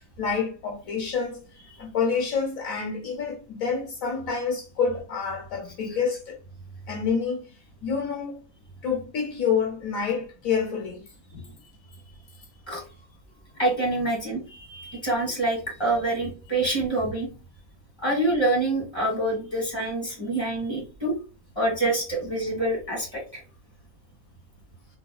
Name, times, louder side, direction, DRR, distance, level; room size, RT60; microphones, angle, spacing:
voice 1, 0.0-1.5 1.8-6.3 6.9-7.5 7.8-8.4 8.8-11.1 11.3-11.4, left 6 dB, 70° left, 1.2 m, -28 dB
voice 2, 13.6-17.3 18.0-21.2 21.5-23.4, right 2 dB, 20° left, 1.7 m, -26 dB
3.5 x 3.1 x 2.3 m
omnidirectional pair, 1.5 m